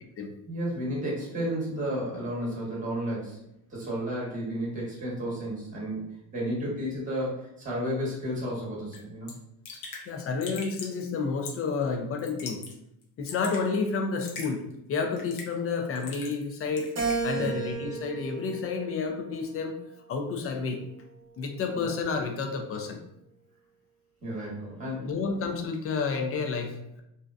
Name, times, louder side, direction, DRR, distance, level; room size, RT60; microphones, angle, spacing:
voice 1, 0.5-3.4 3.7-9.3 17.3-17.6 21.7-21.8 24.2-25.1, equal, 20° right, -5 dB, 1.1 m, -32 dB
Raindrop / Drip, 8.9-9.0 9.3-9.4 9.6-10.0 10.4-11.0 11.4-11.7 12.2-12.7 13.0-13.6 14.2-14.5 15.2-15.6 16.0-16.5 16.8-17.2, left 4 dB, 65° left, 0.7 m, -40 dB
voice 2, 10.1-12.6 13.2-14.6 14.9-16.9 17.2-19.8 20.1-20.8 21.4-23.0 25.0-27.0, left 4 dB, 35° left, 4 dB, 0.4 m, -30 dB
Keyboard (musical), 17.0-19.4 20.0-21.3, right 4 dB, 40° right, 0.8 m, -34 dB
2.6 x 2.1 x 2.3 m, 0.81 s
cardioid pair, 105°, 40 cm